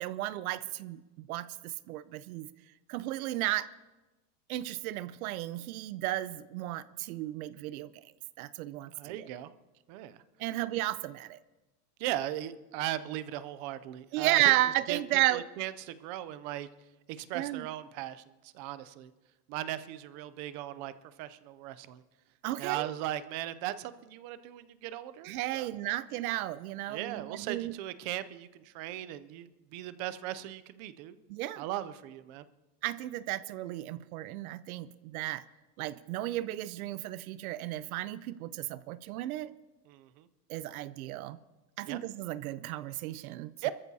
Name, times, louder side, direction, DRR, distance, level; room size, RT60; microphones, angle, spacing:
voice 1, 0.0-2.5 2.9-3.7 4.5-7.9 8.4-9.3 10.4-11.4 14.1-15.4 17.3-17.6 22.4-22.9 25.2-27.7 31.3-31.6 32.8-35.4 35.8-39.5 40.5-41.4 41.8-43.5, right 15 dB, 65° right, 16 dB, 0.7 m, -33 dB
voice 2, 9.0-9.5 9.9-10.2 12.0-14.4 14.9-16.7 17.1-19.1 19.5-20.9 21.2-22.0 22.6-25.7 26.9-31.2 31.6-32.5 39.9-40.3 41.9-42.0 43.6-43.7, right 13 dB, 30° right, 14 dB, 0.4 m, -38 dB
26.5 x 14.0 x 2.7 m, 1.1 s
supercardioid pair, 155°, 46 cm